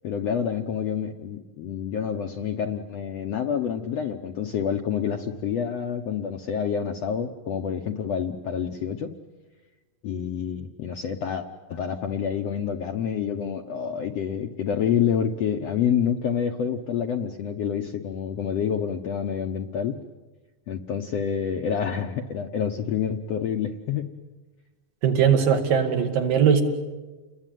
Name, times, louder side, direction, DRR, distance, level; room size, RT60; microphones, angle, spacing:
voice 1, 0.0-9.1 10.0-20.0 20.7-24.1, left 8 dB, 65° left, 4 dB, 1.6 m, -28 dB
voice 2, 25.0-26.6, right 7 dB, 70° right, 4 dB, 3.8 m, -20 dB
29.5 x 21.5 x 9.2 m, 1.2 s
omnidirectional pair, 4.1 m